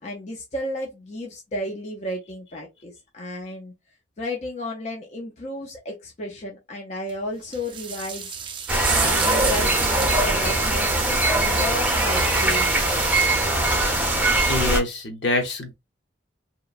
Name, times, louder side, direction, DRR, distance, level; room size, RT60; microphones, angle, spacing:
voice 1, 0.0-3.7 4.2-8.4 8.9-13.1, left 1 dB, 35° left, 0.5 m, -33 dB
sound 1, 7.1-7.2 7.5-13.3, right 7 dB, 25° right, 0.3 m, -30 dB
sound 2, 8.7-14.8, right 1 dB, 10° right, 0.7 m, -21 dB
voice 2, 14.5-15.8, left 2 dB, 65° left, 0.9 m, -25 dB
2.8 x 2.2 x 2.3 m
head